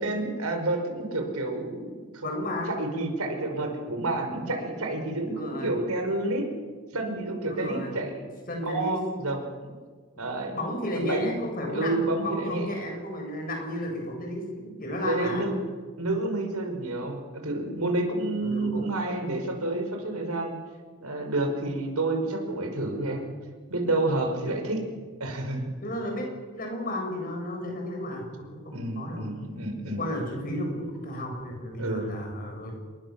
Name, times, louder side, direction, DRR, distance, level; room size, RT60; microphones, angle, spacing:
voice 1, 0.0-2.3 2.8-6.5 6.9-8.2 8.6-9.7 10.2-10.6 10.9-11.4 11.7-12.7 15.0-15.6 16.0-20.5 21.0-23.3 23.7-24.8 25.2-25.7 28.7-30.0 31.8-32.1, right 2 dB, 85° right, 4 dB, 5.6 m, -29 dB
voice 2, 2.2-2.8 5.2-5.7 7.5-7.9 8.5-9.0 10.1-10.2 10.5-15.4 18.4-18.9 24.4-24.5 25.8-26.3 26.5-29.3 29.9-32.8, left 1 dB, 40° left, 2 dB, 7.7 m, -33 dB
27.5 x 23.0 x 7.6 m, 1.5 s
head